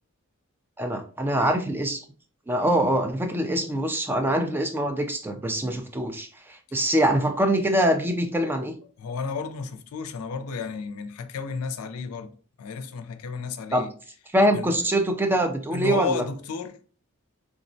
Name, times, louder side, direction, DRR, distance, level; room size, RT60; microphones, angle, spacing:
voice 1, 0.8-2.0 2.5-8.7 13.7-13.9 14.3-16.2, right 1 dB, 10° right, 0.3 m, -24 dB
voice 2, 9.0-12.3 12.6-13.9 14.5-14.8 15.7-16.8, left 5 dB, 85° left, 0.4 m, -32 dB
3.5 x 2.1 x 2.6 m
head